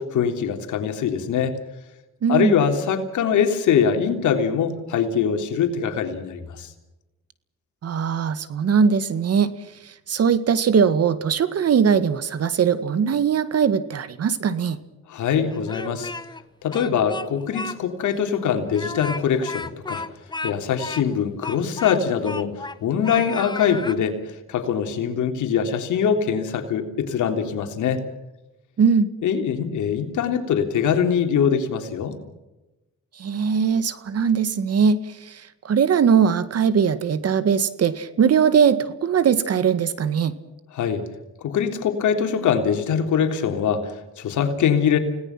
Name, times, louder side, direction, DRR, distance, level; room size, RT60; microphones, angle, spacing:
voice 1, 0.0-1.6 2.3-6.7 15.1-16.1 16.6-20.0 20.4-28.0 29.2-32.2 40.7-41.1 41.4-45.0, left 7 dB, 75° left, 5 dB, 3.4 m, -23 dB
voice 2, 2.2-2.5 7.8-9.5 9.8-14.8 28.8-29.1 33.2-40.3, right 6 dB, 55° right, 13 dB, 1.9 m, -20 dB
Speech, 15.5-16.4 16.7-17.8 18.1-18.2 18.7-22.8 23.0-24.0, left 3 dB, 15° left, 1.1 m, -34 dB
30.0 x 18.5 x 6.0 m, 1.0 s
cardioid pair, 90°, 30 cm